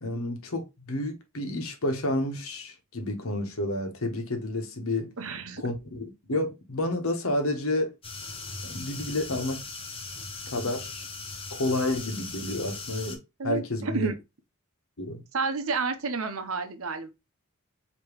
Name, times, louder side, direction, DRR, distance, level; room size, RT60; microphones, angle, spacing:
voice 1, 0.0-5.1 5.6-7.9 8.6-9.6 10.5-11.0 11.5-14.1 15.0-15.2, left 1 dB, 75° left, 1.2 m, -30 dB
voice 2, 5.2-5.6 13.4-14.1 15.3-17.1, right 4 dB, 75° right, 0.8 m, -30 dB
sound 1, 8.0-13.2, left 3 dB, 25° left, 0.8 m, -39 dB
5.0 x 3.0 x 3.1 m
head